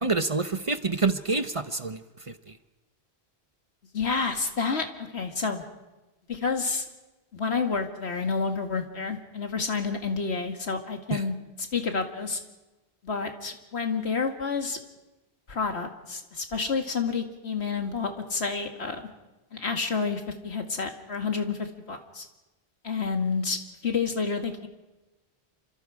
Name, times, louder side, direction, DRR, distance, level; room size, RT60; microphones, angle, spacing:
voice 1, 0.0-2.0 2.3-2.5 11.1-11.2, right 3 dB, 35° right, 10 dB, 0.8 m, -27 dB
voice 2, 3.9-5.6 6.3-6.9 7.3-12.4 13.0-14.8 15.5-19.1 19.5-22.3 22.8-23.6 23.8-24.7, left 5 dB, 85° left, 5 dB, 2.3 m, -29 dB
28.0 x 26.0 x 4.9 m, 1.1 s
omnidirectional pair, 1.1 m